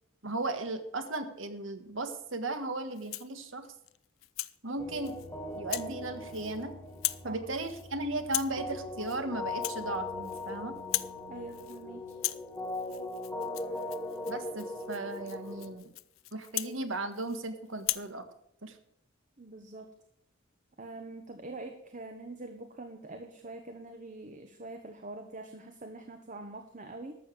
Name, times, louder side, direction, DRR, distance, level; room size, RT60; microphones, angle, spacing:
voice 1, 0.2-3.7 4.6-5.1 5.5-6.7 7.2-10.8 14.3-15.9 16.3-18.2 18.6-18.7, right 2 dB, 70° right, 8 dB, 1.6 m, -36 dB
Rattle (instrument), 2.9-3.4 3.9-4.6 5.0-5.3 5.7-5.9 6.2-6.6 6.9-7.3 7.6-7.9 8.2-8.6 9.0-9.2 9.5-10.5 10.8-11.2 11.5-11.8 12.1-17.4 17.8-18.1, left 17 dB, 85° left, 0.5 m, -38 dB
sound 1, 4.8-15.7, left 2 dB, 10° left, 1.7 m, -40 dB
voice 2, 11.3-12.2 19.4-19.9 20.8-27.2, right 2 dB, 40° right, 6 dB, 1.1 m, -44 dB
13.0 x 7.1 x 7.7 m, 0.73 s
head